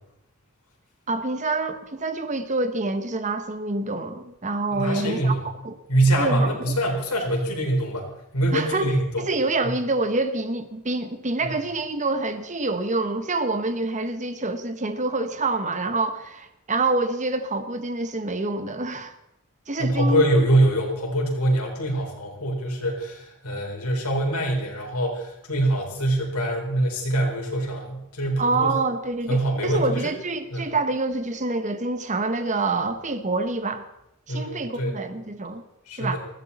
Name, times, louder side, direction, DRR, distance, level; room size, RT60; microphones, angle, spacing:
voice 1, 1.1-5.3 5.6-5.8 6.2-6.7 8.5-19.1 19.7-20.2 28.4-33.9 34.3-35.6 36.0-36.2, right 3 dB, 35° right, 1.1 m, -26 dB
voice 2, 4.7-5.4 5.9-8.0 8.3-9.2 11.4-11.6 19.8-28.7 29.3-30.1 30.5-30.7 34.3-34.9 35.9-36.2, right 1 dB, 85° left, 4.6 m, -24 dB
20.0 x 15.5 x 4.2 m
head